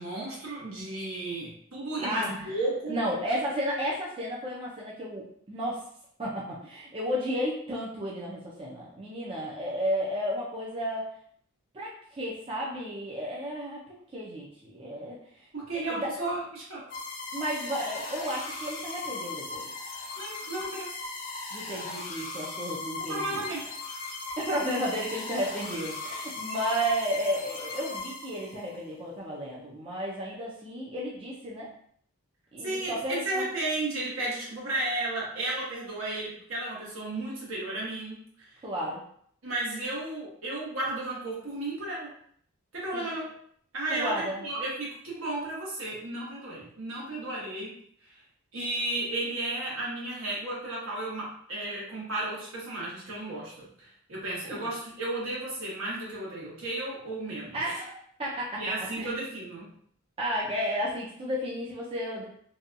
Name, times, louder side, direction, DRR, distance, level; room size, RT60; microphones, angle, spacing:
voice 1, 0.0-2.9 15.5-16.8 18.0-18.1 20.2-20.9 23.1-23.7 32.6-38.5 39.4-42.1 42.7-43.2 43.7-47.7 48.5-57.6 58.6-59.7, right 2 dB, 75° right, -5 dB, 1.1 m, -33 dB
voice 2, 2.0-2.6 2.9-5.8 6.2-11.1 11.7-15.5 15.7-16.3 17.3-19.7 21.5-23.4 24.4-31.7 32.5-33.4 38.6-39.0 42.9-43.1 43.9-44.4 54.4-54.7 57.5-58.6 58.9-59.1 60.2-62.2, equal, 25° right, -5 dB, 0.4 m, -33 dB
sound 1, 16.9-28.7, left 3 dB, 40° left, 0.5 m, -38 dB
2.7 x 2.2 x 2.5 m, 0.62 s
head